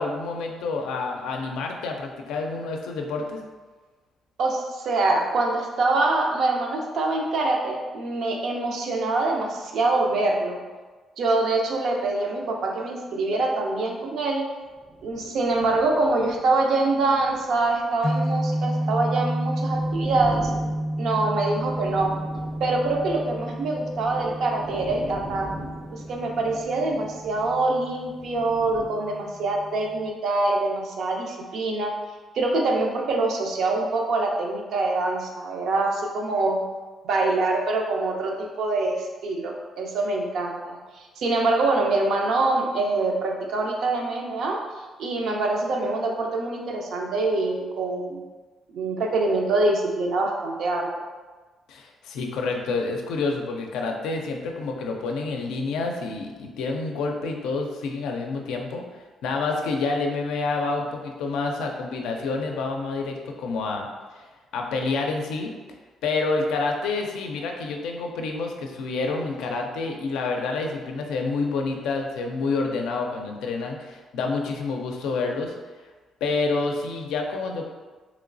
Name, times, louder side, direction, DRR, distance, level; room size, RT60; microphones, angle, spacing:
voice 1, 0.0-3.4 51.7-58.8 59.2-63.9 64.2-64.3 64.5-65.5 66.0-75.5 76.2-77.6, left 3 dB, 90° left, 2 dB, 0.4 m, -28 dB
voice 2, 4.4-10.6 11.2-14.4 15.0-20.5 21.0-22.1 22.6-25.5 25.9-31.9 32.3-36.6 37.0-44.6 45.0-48.2 48.7-50.9, right 2 dB, 70° right, 1 dB, 0.5 m, -25 dB
sound 1, 14.6-28.9, equal, 15° right, 0.5 m, -42 dB
sound 2, 18.0-30.1, right 1 dB, 35° left, 0.5 m, -31 dB
3.1 x 3.0 x 2.5 m, 1.3 s
cardioid pair, 90°, 0 cm